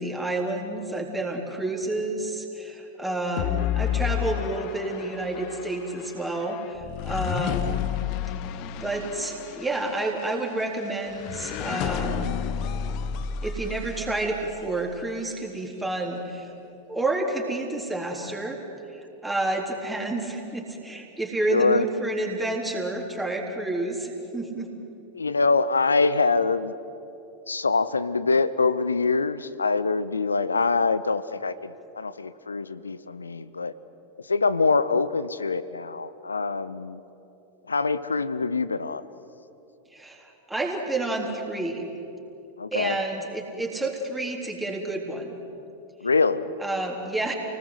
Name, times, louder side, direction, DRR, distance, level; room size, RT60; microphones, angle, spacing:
voice 1, 0.0-7.9 8.8-12.3 13.4-16.5 16.9-18.6 18.9-24.7 39.9-41.9 42.7-45.4 46.6-47.3, right 2 dB, 5° right, 0 dB, 3.9 m, -29 dB
sound 1, 3.4-14.7, left 9 dB, 40° left, 0.9 m, -31 dB
voice 2, 21.5-21.9 25.1-26.7 27.5-33.7 34.2-37.0 37.7-39.0 42.6-43.0 46.0-46.5, left 4 dB, 75° left, 16 dB, 0.8 m, -24 dB
29.0 x 19.5 x 8.1 m, 2.9 s
figure-of-eight pair, 90°, 0 cm